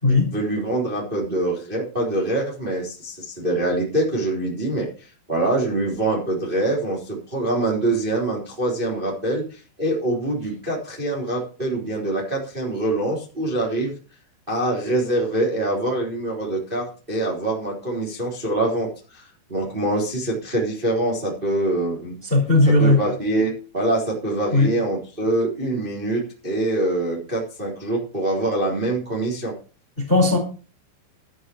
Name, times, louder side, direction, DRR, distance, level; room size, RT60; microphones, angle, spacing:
voice 1, 0.1-13.9 14.5-19.2 19.5-22.1 22.8-29.5, right 2 dB, 10° right, -2 dB, 3.2 m, -24 dB
voice 2, 22.3-23.0 24.5-24.7 30.0-30.4, left 2 dB, 10° left, 1 dB, 3.4 m, -16 dB
13.5 x 6.4 x 7.1 m, 0.37 s
omnidirectional pair, 5.8 m